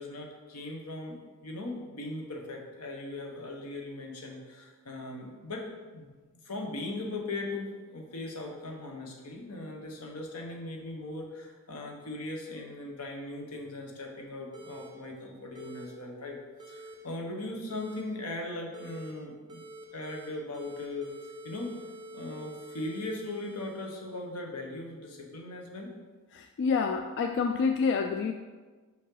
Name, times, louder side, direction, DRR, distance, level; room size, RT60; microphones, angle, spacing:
voice 1, 0.0-5.7 5.9-6.1 6.4-16.4 16.7-19.6 19.9-21.1 21.4-21.7 22.1-25.9, left 2 dB, 80° left, 1 dB, 1.1 m, -39 dB
sound 1, 14.5-14.9 15.5-15.8 16.6-16.9 17.7-18.0 18.7-19.1 19.5-20.3 20.5-24.3, right 2 dB, 20° right, 1.0 m, -47 dB
voice 2, 26.3-28.3, left 5 dB, 55° left, 5 dB, 0.3 m, -28 dB
5.5 x 5.3 x 3.8 m, 1.4 s
head